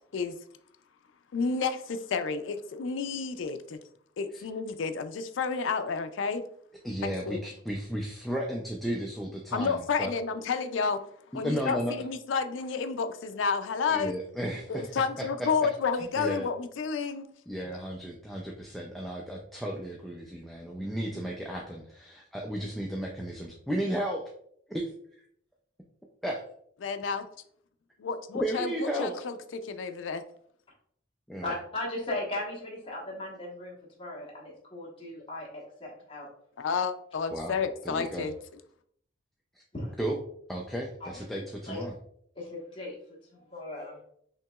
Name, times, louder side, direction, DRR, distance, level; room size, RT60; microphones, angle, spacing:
voice 1, 1.3-3.8 4.2-6.4 7.0-7.5 9.5-11.0 11.3-14.1 14.7-17.3 26.8-27.3 28.0-29.4 29.6-30.2 36.6-38.3, left 5 dB, 80° left, 9 dB, 0.4 m, -30 dB
voice 2, 6.8-10.1 11.4-11.9 13.9-14.9 15.2-15.3 16.2-16.5 17.5-24.3 24.7-24.9 26.2-26.4 28.4-29.1 31.3-31.5 37.3-37.6 37.8-38.3 40.0-40.2 40.5-41.9, right 1 dB, ahead, -1 dB, 0.3 m, -34 dB
voice 3, 31.4-36.3 37.4-37.5 39.7-40.0 41.0-41.2 41.7-41.8 42.3-42.9 43.3-44.0, left 1 dB, 25° left, -5 dB, 1.1 m, -37 dB
5.6 x 2.9 x 2.3 m, 0.67 s
head